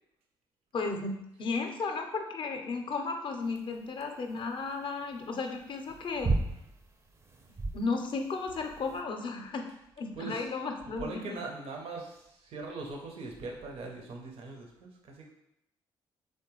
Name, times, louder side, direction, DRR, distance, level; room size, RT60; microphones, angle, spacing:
voice 1, 0.7-1.1 1.4-6.3 7.7-9.7 10.0-11.4, left 4 dB, 50° left, 4 dB, 0.5 m, -34 dB
sound 1, 3.5-9.0, right 3 dB, 25° right, 0.4 m, -35 dB
voice 2, 10.1-10.5 11.0-15.3, right 3 dB, 65° right, 1 dB, 0.7 m, -41 dB
3.2 x 2.2 x 3.0 m, 0.82 s
supercardioid pair, 55°, 11 cm